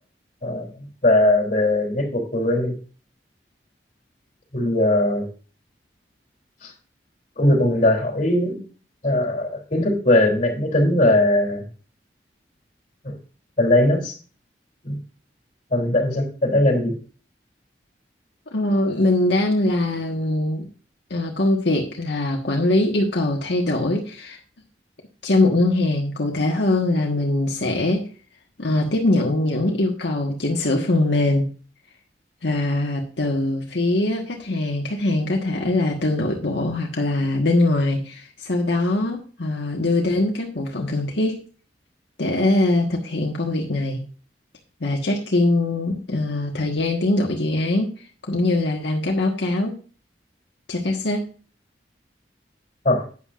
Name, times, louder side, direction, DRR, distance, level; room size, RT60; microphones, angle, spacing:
voice 1, 1.0-2.7 4.5-5.3 6.6-6.7 7.4-8.6 9.0-11.6 13.0-13.1 13.6-14.1 14.8-14.9 15.7-16.9 52.8-53.0, left 1 dB, 45° left, 0 dB, 3.4 m, -19 dB
voice 2, 18.5-20.7 21.1-24.4 25.2-28.0 28.6-31.5 32.4-41.4 42.2-44.0 44.8-47.9 48.2-49.8 50.7-51.3, left 2 dB, 85° left, 0 dB, 1.5 m, -22 dB
11.5 x 9.3 x 2.5 m, 0.38 s
head